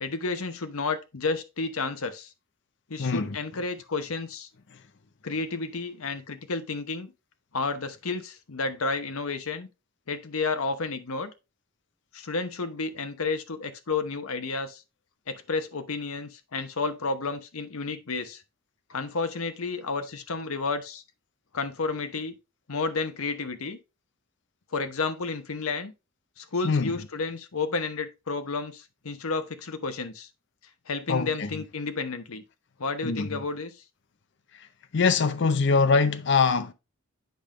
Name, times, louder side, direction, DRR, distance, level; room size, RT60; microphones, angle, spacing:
voice 1, 0.0-2.3 2.9-4.5 5.2-7.1 7.5-9.7 10.1-11.3 12.1-14.8 15.3-18.4 18.9-21.0 21.5-22.3 22.7-23.8 24.7-25.9 26.4-30.3 30.9-32.4 32.8-33.7, left 4 dB, 75° left, 0.9 m, -31 dB
voice 2, 3.0-3.4 26.6-26.9 31.1-31.5 33.0-33.4 34.9-36.7, left 4 dB, 55° left, 0.6 m, -23 dB
8.0 x 5.1 x 3.0 m
head